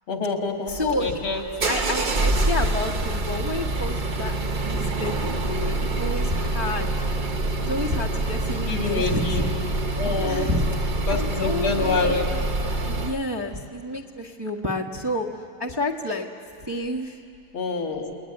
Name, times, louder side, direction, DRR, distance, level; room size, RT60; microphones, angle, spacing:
voice 1, 0.1-1.4 8.7-9.4 10.0-10.5 11.1-12.3 17.5-18.1, left 4 dB, 80° left, 3 dB, 3.2 m, -26 dB
voice 2, 0.7-1.2 1.7-4.4 4.7-7.1 7.6-9.5 9.9-12.4 12.8-15.3 15.6-16.3 16.6-17.2, left 1 dB, 15° right, -1 dB, 1.1 m, -30 dB
sound 1, 0.7-13.2, right 2 dB, 50° right, 0.5 m, -26 dB
29.5 x 20.0 x 9.9 m, 2.5 s
omnidirectional pair, 2.3 m